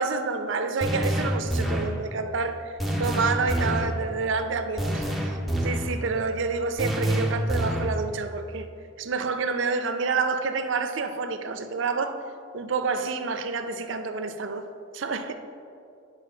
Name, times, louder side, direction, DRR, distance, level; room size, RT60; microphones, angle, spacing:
voice 1, 0.0-8.7 9.0-12.2 12.5-14.7 14.9-15.3, right 4 dB, 65° right, 0.5 m, -28 dB
sound 1, 0.8-2.0 2.8-4.0 4.8-6.0 6.8-8.0, equal, ahead, 0.6 m, -27 dB
8.7 x 4.5 x 5.5 m
head